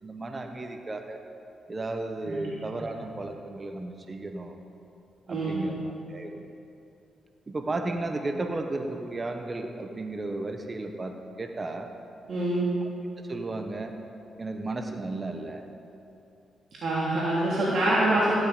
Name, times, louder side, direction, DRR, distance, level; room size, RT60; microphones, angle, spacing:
voice 1, 0.0-1.2 1.7-4.5 5.3-6.5 7.5-11.9 13.3-13.9 14.4-15.7 18.1-18.2, right 2 dB, 35° right, 5 dB, 1.1 m, -34 dB
voice 2, 5.3-5.7 12.3-12.7 16.8-18.3, right 1 dB, 65° right, -8 dB, 2.9 m, -25 dB
15.0 x 12.0 x 5.1 m, 2.6 s
cardioid pair, 70°, 0 cm